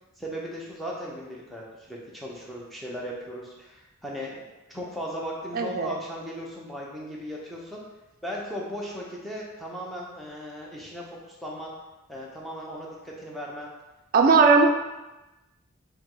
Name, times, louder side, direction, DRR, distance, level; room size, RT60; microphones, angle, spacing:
voice 1, 0.2-7.8 8.2-11.7 12.1-13.7 14.2-14.7, equal, ahead, -4 dB, 0.6 m, -37 dB
voice 2, 5.5-6.0 14.1-14.7, right 4 dB, 40° right, 3 dB, 0.4 m, -18 dB
5.0 x 2.0 x 3.8 m, 1.0 s
head